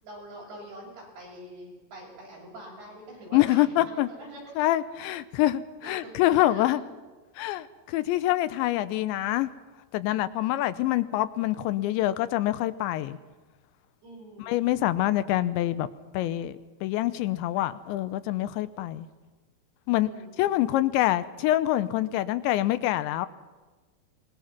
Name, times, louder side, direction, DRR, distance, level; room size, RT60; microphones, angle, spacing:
voice 1, 0.0-4.5 5.8-6.6 14.0-14.9 19.9-20.6, right 1 dB, 70° right, -3 dB, 9.7 m, -45 dB
voice 2, 3.3-4.1 4.6-6.8 7.4-9.5 9.9-13.2 14.4-15.9 16.1-16.6 16.8-19.1 19.9-20.1 20.4-23.3, left 14 dB, 85° left, 14 dB, 3.1 m, -25 dB
24.5 x 21.0 x 6.0 m, 1.3 s
omnidirectional pair, 5.1 m